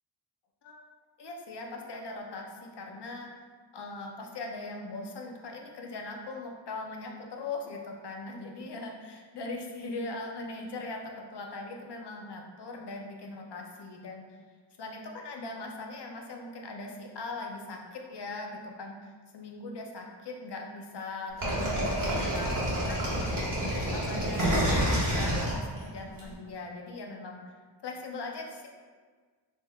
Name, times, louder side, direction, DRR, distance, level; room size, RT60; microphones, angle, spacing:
voice 1, 1.2-3.3 3.7-14.2 14.8-23.5 23.9-27.5 27.8-28.7, left 3 dB, 60° left, 1 dB, 0.6 m, -40 dB
sound 1, 21.4-26.2, equal, 45° right, 1.4 m, -28 dB
4.1 x 3.5 x 2.3 m, 1.5 s
wide cardioid pair, 115°, 45 cm